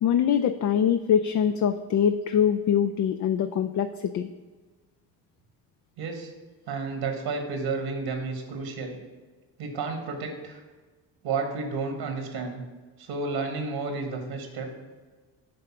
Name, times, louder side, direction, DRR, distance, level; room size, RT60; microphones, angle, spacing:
voice 1, 0.0-4.3, left 8 dB, 45° left, 9 dB, 0.4 m, -23 dB
voice 2, 6.0-6.3 6.7-9.0 9.6-10.6 11.2-12.6 13.0-14.7, right 4 dB, 65° right, 4 dB, 1.3 m, -31 dB
8.5 x 3.3 x 5.9 m, 1.3 s
hypercardioid pair, 60°, 46 cm